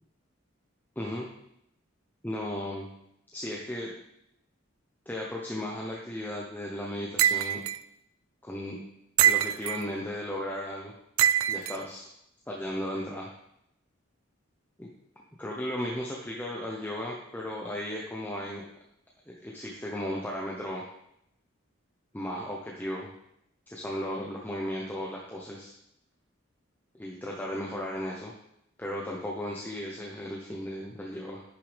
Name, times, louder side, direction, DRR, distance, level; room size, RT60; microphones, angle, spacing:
voice 1, 1.0-1.3 2.2-2.9 3.3-3.9 5.1-7.6 8.4-8.7 9.2-10.9 11.5-12.0 12.5-13.3 14.8-14.9 15.4-18.6 19.3-20.8 22.1-23.1 23.7-25.7 26.9-28.3 28.8-31.4, left 1 dB, 10° left, -3 dB, 0.9 m, -35 dB
sound 1, 7.2-7.8 9.2-9.8 11.2-11.8, right 11 dB, 90° right, 0.3 m, -24 dB
10.0 x 6.8 x 3.4 m, 0.78 s
head